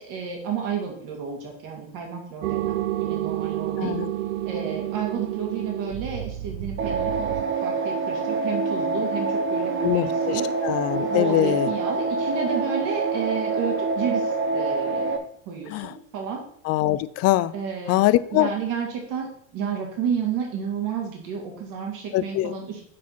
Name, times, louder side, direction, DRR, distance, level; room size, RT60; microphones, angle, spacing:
voice 1, 0.0-4.0 4.4-7.3 7.6-10.4 11.1-15.2 15.5-16.4 17.5-18.0 18.3-22.9, right 6 dB, 55° right, 1 dB, 2.8 m, -31 dB
sound 1, 2.4-7.4, right 13 dB, 80° right, 0.8 m, -29 dB
voice 2, 3.8-4.1 9.8-11.7 15.7-15.9 16.6-17.5 17.9-18.5 22.1-22.6, left 16 dB, 40° left, 16 dB, 0.5 m, -23 dB
sound 2, 6.8-15.2, right 4 dB, 30° right, 1.3 m, -26 dB
7.5 x 4.7 x 5.9 m, 0.62 s
hypercardioid pair, 95°, 38 cm